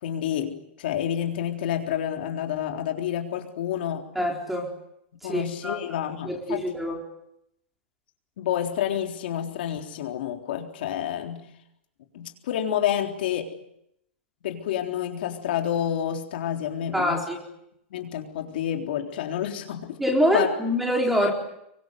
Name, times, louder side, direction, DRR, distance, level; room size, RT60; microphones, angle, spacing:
voice 1, 0.0-4.0 5.2-6.6 8.4-11.4 12.1-13.5 14.4-17.2 17.9-20.0 20.3-20.5, left 10 dB, 55° left, 3 dB, 3.8 m, -29 dB
voice 2, 4.1-4.7 5.2-5.8 6.2-7.0 16.9-17.4 20.0-21.3, equal, ahead, 1 dB, 4.3 m, -25 dB
27.0 x 24.0 x 8.0 m, 0.78 s
supercardioid pair, 170°, 7 cm